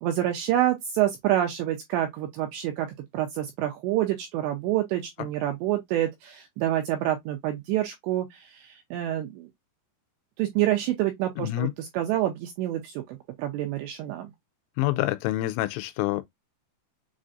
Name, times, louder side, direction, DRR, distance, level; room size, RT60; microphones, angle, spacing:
voice 1, 0.0-2.9 3.1-9.5 10.4-11.7 11.9-14.3, right 13 dB, 90° right, 2.5 m, -27 dB
voice 2, 11.4-11.7 14.8-16.2, left 16 dB, 85° left, 3.0 m, -27 dB
7.3 x 2.5 x 2.4 m
omnidirectional pair, 5.8 m